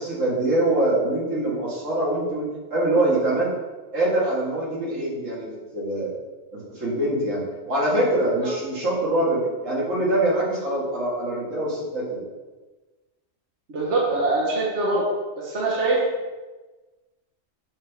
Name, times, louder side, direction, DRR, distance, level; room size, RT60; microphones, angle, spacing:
voice 1, 0.0-3.5 3.9-6.1 6.5-12.3, right 1 dB, 85° right, -5 dB, 2.3 m, -24 dB
voice 2, 13.7-15.0 15.4-16.0, right 2 dB, 65° right, -4 dB, 1.4 m, -23 dB
7.2 x 3.6 x 5.5 m, 1.2 s
omnidirectional pair, 1.3 m